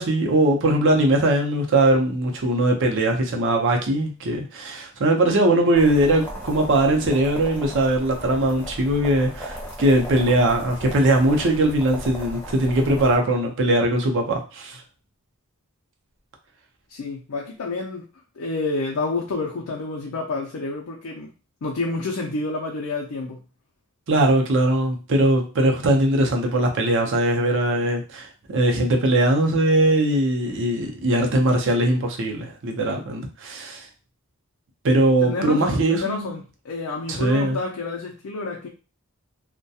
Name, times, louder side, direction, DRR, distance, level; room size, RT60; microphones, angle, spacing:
voice 1, 0.0-14.8 24.1-33.8 34.8-36.3 37.1-37.6, right 1 dB, 55° right, 0.6 m, -20 dB
sound 1, 5.7-13.1, equal, 10° left, 0.6 m, -36 dB
voice 2, 16.9-18.1 18.4-21.3 21.6-23.4 34.9-38.7, left 3 dB, 75° left, 0.4 m, -29 dB
2.3 x 2.1 x 2.7 m
head